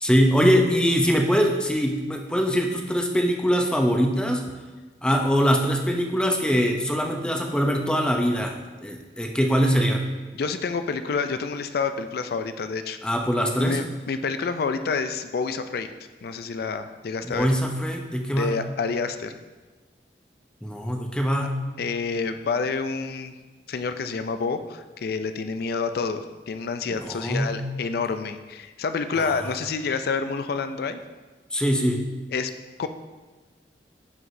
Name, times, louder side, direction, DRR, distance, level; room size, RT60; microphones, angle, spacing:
voice 1, 0.0-4.4 5.0-10.0 13.0-13.8 17.2-18.6 20.6-21.6 26.9-27.7 29.1-29.4 31.5-32.0, equal, 5° left, 2 dB, 0.6 m, -23 dB
voice 2, 10.4-13.0 13.6-15.9 16.2-17.5 18.3-19.4 21.8-23.3 23.7-31.0 32.3-32.5 32.8-32.9, left 4 dB, 60° left, 9 dB, 0.4 m, -28 dB
11.0 x 4.8 x 2.7 m, 1.3 s
head